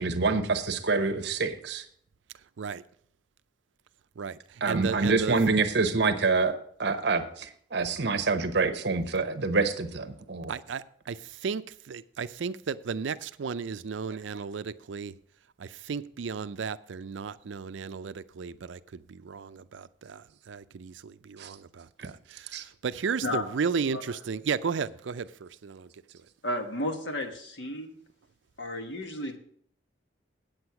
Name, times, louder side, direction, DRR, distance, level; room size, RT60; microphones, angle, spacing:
voice 1, 0.0-1.9 4.6-10.5 21.4-21.5 22.0-22.1 22.5-22.6, right 3 dB, 60° right, 0.9 m, -27 dB
voice 2, 4.2-5.4 10.5-15.1 15.6-25.9, right 5 dB, 75° right, 0.4 m, -34 dB
voice 3, 26.4-28.0 28.6-29.4, left 1 dB, 70° left, 1.3 m, -33 dB
8.9 x 7.9 x 5.8 m
head